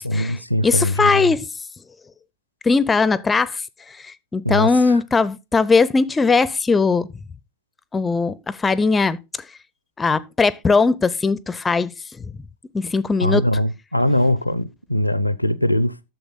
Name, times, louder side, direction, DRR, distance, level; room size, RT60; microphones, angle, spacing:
voice 1, 0.0-1.3 4.4-5.0 13.2-15.9, left 1 dB, 90° left, 0.5 m, -21 dB
voice 2, 0.6-1.5 2.6-3.6 3.9-7.1 7.9-9.2 10.0-11.9 12.7-13.4, left 4 dB, 15° left, 0.4 m, -19 dB
9.3 x 6.8 x 3.8 m
figure-of-eight pair, 90°, 0 cm